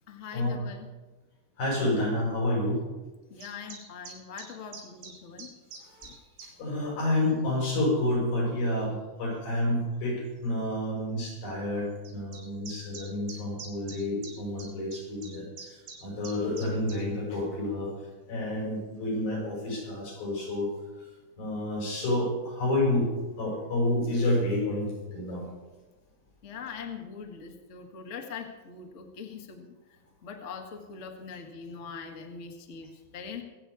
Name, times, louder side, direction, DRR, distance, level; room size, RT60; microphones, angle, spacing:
voice 1, 0.1-0.9 3.3-5.5 6.0-6.1 26.4-33.4, left 6 dB, 50° left, 3 dB, 0.8 m, -42 dB
voice 2, 1.6-2.8 5.8-6.1 6.6-17.9 18.3-20.7 21.0-21.1 21.4-23.1 23.4-25.5, left 1 dB, 90° left, -3 dB, 7.5 m, -29 dB
sound 1, 3.4-6.5 7.2-7.4 8.3-8.4 9.5-9.6 9.9-10.0 10.3-10.4 12.0-17.0, right 4 dB, 85° right, 4.3 m, -45 dB
24.5 x 8.2 x 4.7 m, 1.2 s
omnidirectional pair, 4.1 m